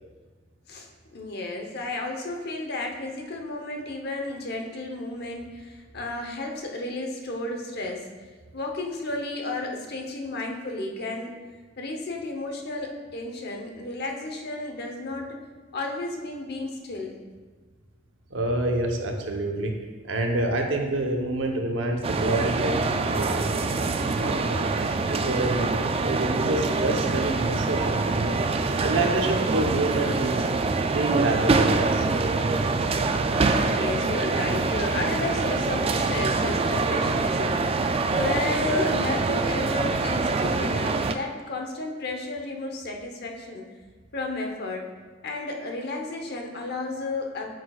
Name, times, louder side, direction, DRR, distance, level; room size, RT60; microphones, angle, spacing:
voice 1, 0.7-8.1 8.5-11.3 11.8-15.4 15.7-17.2 33.6-43.7 44.1-44.9 45.2-47.5, left 2 dB, 55° left, 2 dB, 0.9 m, -32 dB
voice 2, 18.3-19.8 20.0-23.5 24.1-24.7 25.1-28.3 28.8-30.5 30.9-32.1, right 2 dB, 70° right, 2 dB, 0.9 m, -27 dB
sound 1, 22.0-41.1, right 3 dB, 30° right, 0.3 m, -25 dB
9.0 x 6.2 x 2.4 m, 1.4 s
head